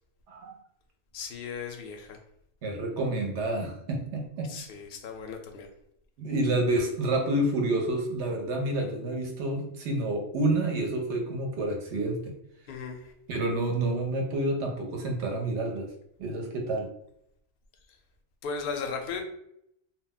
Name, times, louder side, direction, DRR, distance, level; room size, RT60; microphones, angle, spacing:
voice 1, 1.1-2.2 4.5-5.7 12.7-13.1 18.4-19.2, left 5 dB, 60° left, 4 dB, 0.6 m, -36 dB
voice 2, 2.6-4.5 6.2-12.3 13.3-15.9 16.2-16.9, right 2 dB, 70° right, 2 dB, 0.8 m, -29 dB
2.2 x 2.0 x 3.8 m, 0.75 s
omnidirectional pair, 1.3 m